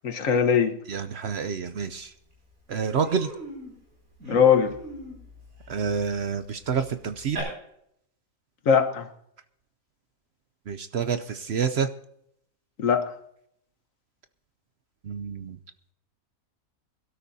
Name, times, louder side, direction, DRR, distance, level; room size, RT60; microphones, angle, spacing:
voice 1, 0.0-0.8 4.3-4.7 8.7-9.1 12.8-13.1, left 7 dB, 65° left, 9 dB, 1.5 m, -20 dB
voice 2, 0.9-2.1 2.7-3.3 5.7-7.4 10.7-11.9 15.0-15.6, right 6 dB, 55° right, 10 dB, 0.8 m, -28 dB
Human voice, 1.9-2.0 2.3-2.5 2.9-7.4, right 1 dB, 85° right, 7.9 m, -41 dB
22.5 x 13.0 x 2.7 m, 0.72 s
omnidirectional pair, 1.5 m